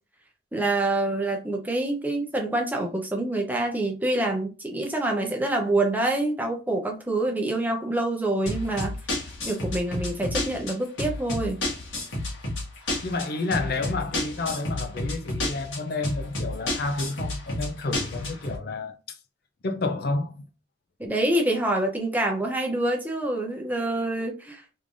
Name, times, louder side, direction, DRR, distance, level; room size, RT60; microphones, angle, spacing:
voice 1, 0.5-9.0 9.4-11.6 21.0-24.8, right 2 dB, 10° right, 0.7 m, -26 dB
sound 1, 8.5-18.6, left 1 dB, 75° left, 1.4 m, -31 dB
voice 2, 13.0-19.2 19.6-20.4, left 3 dB, 50° left, 0.5 m, -30 dB
3.6 x 3.2 x 2.6 m
head